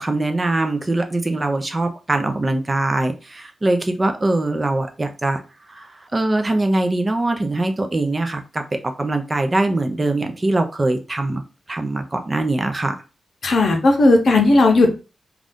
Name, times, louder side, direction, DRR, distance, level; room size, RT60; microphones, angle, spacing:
voice 1, 0.0-5.4 5.7-11.4 11.7-13.0, right 2 dB, 25° right, 6 dB, 0.5 m, -22 dB
voice 2, 13.4-14.9, left 2 dB, 60° left, 2 dB, 0.8 m, -15 dB
2.6 x 2.4 x 3.4 m, 0.32 s
wide cardioid pair, 145°, 0 cm